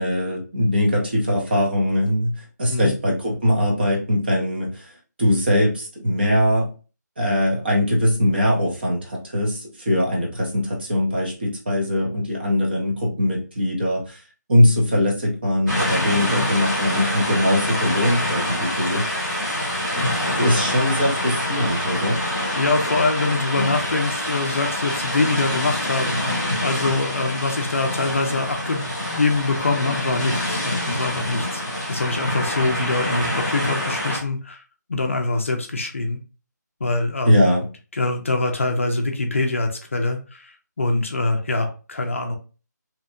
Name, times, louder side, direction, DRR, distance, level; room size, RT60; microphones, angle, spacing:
voice 1, 0.0-4.9 5.2-6.7 7.2-14.2 14.5-19.3 20.0-20.1 20.4-22.2 23.5-23.8 37.3-37.7, left 1 dB, 35° right, -2 dB, 0.7 m, -21 dB
sound 1, 15.7-34.2, left 1 dB, 5° right, 0.8 m, -26 dB
voice 2, 22.6-31.6 31.9-34.6 34.9-36.2 36.8-37.5 37.9-42.4, left 3 dB, 45° left, 4 dB, 0.4 m, -24 dB
2.7 x 2.1 x 2.4 m, 0.34 s
hypercardioid pair, 175°, 10 cm